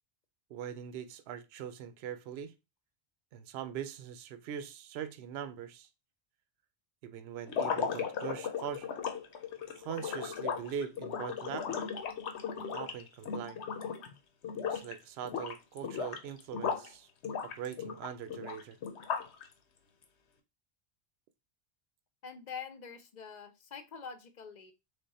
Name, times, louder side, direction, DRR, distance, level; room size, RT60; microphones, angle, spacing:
voice 1, 0.5-2.5 3.3-5.9 7.0-8.9 9.8-11.7 12.6-13.6 14.7-17.1 17.4-18.8, right 9 dB, 70° right, 0.8 m, -41 dB
sound 1, 7.5-14.1 14.4-14.9 15.2-16.9 17.2-19.4, left 7 dB, 85° left, 1.1 m, -36 dB
voice 2, 22.2-24.7, left 6 dB, 50° left, 0.7 m, -45 dB
3.6 x 3.4 x 4.0 m
omnidirectional pair, 1.1 m